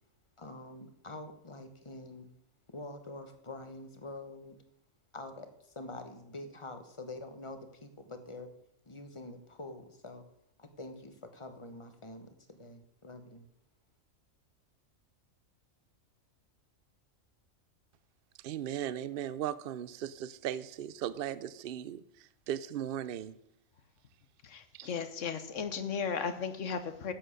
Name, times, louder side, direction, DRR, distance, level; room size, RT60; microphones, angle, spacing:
voice 1, 0.4-2.3 2.7-4.6 5.1-5.5 5.7-8.5 8.9-10.2 10.6-13.5, left 2 dB, 25° left, 1.0 m, -46 dB
voice 2, 18.4-23.4 24.7-24.9, right 10 dB, 60° right, 0.6 m, -37 dB
voice 3, 24.4-27.1, left 6 dB, 70° left, 1.3 m, -35 dB
10.0 x 7.9 x 6.4 m
omnidirectional pair, 1.4 m